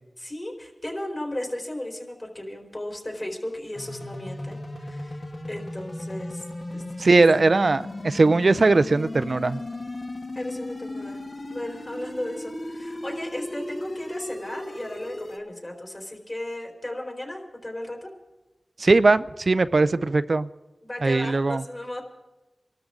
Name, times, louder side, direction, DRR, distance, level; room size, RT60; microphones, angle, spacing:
voice 1, 0.2-5.2 5.5-6.4 6.7-7.2 10.3-11.2 11.5-18.1 20.8-22.0, left 1 dB, 35° left, 1 dB, 4.3 m, -35 dB
sound 1, 3.7-15.4, left 1 dB, 65° left, 2.4 m, -36 dB
voice 2, 7.0-9.6 18.8-20.5 21.0-21.6, right 3 dB, 65° right, 13 dB, 0.5 m, -20 dB
26.0 x 13.0 x 3.8 m, 1.1 s
cardioid pair, 40°, 0 cm